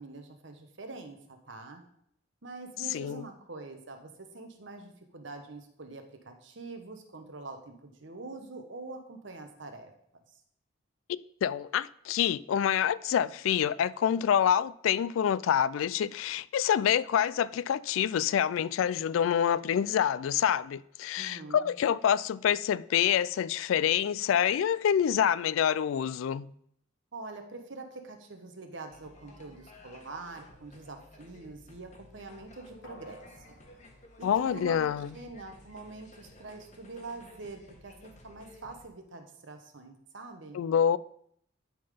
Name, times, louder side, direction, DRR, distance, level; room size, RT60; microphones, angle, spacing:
voice 1, 0.0-1.8 2.4-9.9 21.2-21.7 27.1-33.6 34.2-40.6, right 3 dB, 65° right, 1.1 m, -45 dB
voice 2, 2.9-3.2 11.1-26.5 34.2-35.1 40.5-41.0, left 9 dB, 80° left, 0.3 m, -27 dB
sound 1, 28.9-38.8, left 1 dB, 35° left, 1.3 m, -55 dB
sound 2, 32.8-35.4 35.8-35.9, left 1 dB, 55° left, 1.4 m, -56 dB
11.5 x 3.9 x 5.1 m
head